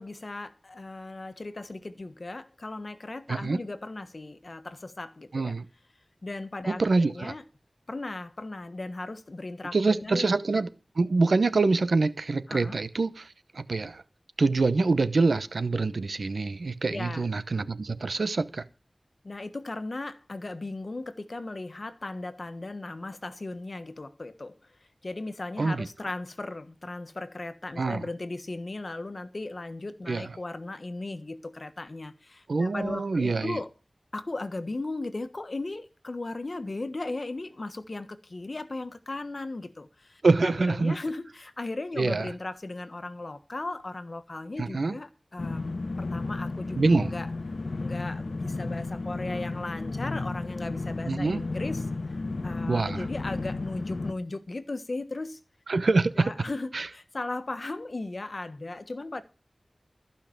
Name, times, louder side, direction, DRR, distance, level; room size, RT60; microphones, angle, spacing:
voice 1, 0.0-5.5 6.2-7.4 7.9-10.3 12.5-12.8 16.9-17.3 19.2-24.5 25.0-33.7 34.1-47.3 47.8-55.4 56.2-59.2, left 2 dB, 55° left, 1.3 m, -37 dB
voice 2, 3.3-3.6 5.3-5.6 6.7-7.3 9.7-10.7 10.9-14.0 14.4-18.6 25.6-25.9 27.8-28.0 30.1-30.3 32.5-33.6 40.2-41.0 42.0-42.3 44.6-44.9 46.8-47.1 51.1-51.4 52.7-53.1 55.7-56.3 56.7-56.9, right 3 dB, 85° right, 0.9 m, -25 dB
sound 1, 45.4-54.1, left 3 dB, 75° left, 1.1 m, -33 dB
14.5 x 5.8 x 8.7 m
wide cardioid pair, 55°, 0 cm